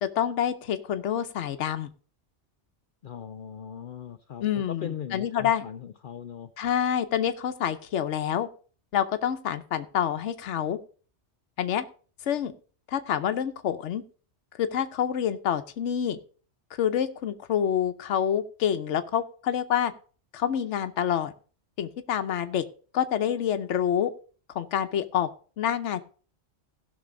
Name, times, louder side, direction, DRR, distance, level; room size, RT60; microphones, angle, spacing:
voice 1, 0.0-1.9 4.4-5.6 6.6-8.5 8.9-10.8 11.6-11.9 12.3-12.5 12.9-14.0 14.6-16.2 16.8-19.9 20.3-21.3 21.8-22.6 22.9-24.1 24.5-25.3 25.6-26.0, left 9 dB, 80° left, 9 dB, 1.1 m, -27 dB
voice 2, 3.0-6.5, left 8 dB, 55° left, 9 dB, 0.7 m, -39 dB
16.5 x 6.0 x 3.8 m, 0.39 s
omnidirectional pair, 1.2 m